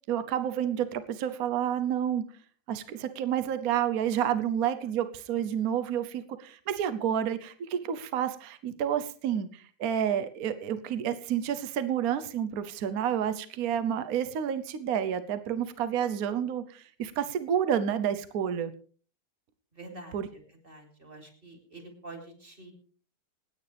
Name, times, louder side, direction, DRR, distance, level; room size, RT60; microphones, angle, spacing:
voice 1, 0.1-2.2 2.7-18.7 20.1-20.3, right 9 dB, 60° right, 11 dB, 1.3 m, -29 dB
voice 2, 19.7-20.2 20.6-22.7, right 2 dB, 30° right, 3 dB, 3.6 m, -46 dB
27.5 x 9.4 x 3.4 m, 0.43 s
omnidirectional pair, 1.8 m